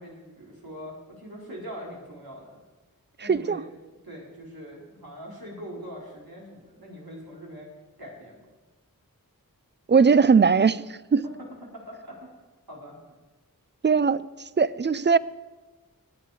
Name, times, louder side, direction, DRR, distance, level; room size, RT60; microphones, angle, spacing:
voice 1, 0.0-2.6 3.2-3.7 4.0-7.7 8.0-8.4 11.2-11.5 11.7-12.3 12.7-13.0, equal, 80° right, 4.1 m, -42 dB
voice 2, 3.2-3.6 9.9-10.8 11.1-11.2 13.8-14.2 14.6-15.2, right 5 dB, 30° right, 0.4 m, -19 dB
19.5 x 8.7 x 4.9 m
wide cardioid pair, 50°, 36 cm